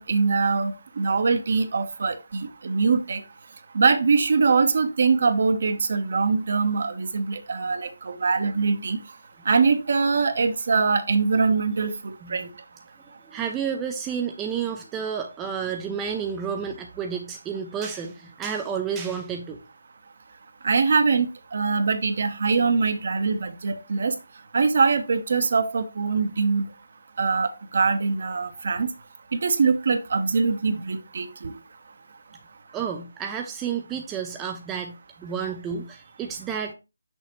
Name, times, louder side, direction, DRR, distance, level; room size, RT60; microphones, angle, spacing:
voice 1, 0.0-3.2 3.7-9.0 9.5-12.5 20.6-24.1 24.5-26.6 27.2-28.9 29.3-31.5, right 4 dB, 50° right, 0.9 m, -23 dB
voice 2, 13.3-19.6 32.7-36.7, right 7 dB, 10° right, 0.4 m, -30 dB
6.4 x 5.2 x 3.0 m
figure-of-eight pair, 165°, 0 cm